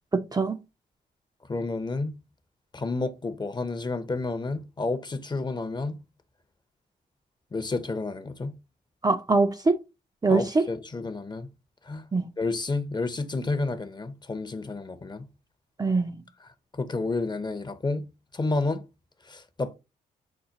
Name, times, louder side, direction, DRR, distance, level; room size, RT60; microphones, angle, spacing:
voice 1, 0.1-0.6 9.0-9.8 10.2-10.7 12.1-12.2 15.8-16.1, right 3 dB, 20° right, 0.5 m, -23 dB
voice 2, 1.5-2.2 2.7-6.0 7.5-8.6 10.3-11.5 11.9-12.0 12.4-15.3 16.8-18.8 19.3-19.7, left 3 dB, 25° left, 0.7 m, -30 dB
5.5 x 2.2 x 3.9 m
cardioid pair, 65°, 18 cm